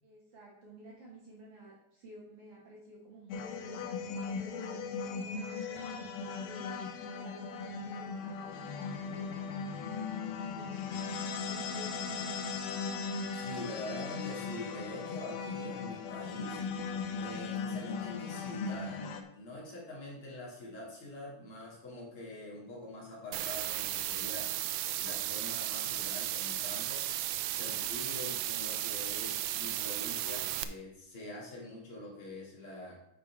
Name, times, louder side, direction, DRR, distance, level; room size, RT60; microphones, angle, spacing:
voice 1, 0.0-4.6 5.0-10.1 10.5-12.7 27.6-27.9, right 2 dB, 55° right, -4 dB, 2.5 m, -53 dB
sound 1, 3.3-19.2, left 5 dB, 75° left, 2.0 m, -38 dB
voice 2, 13.3-16.6 17.2-19.0 19.3-24.5 25.0-27.1 27.6-32.9, left 1 dB, 50° left, -4 dB, 3.6 m, -45 dB
sound 2, 23.3-30.6, right 13 dB, 80° right, 1.7 m, -35 dB
11.0 x 5.0 x 4.7 m, 0.81 s
omnidirectional pair, 3.3 m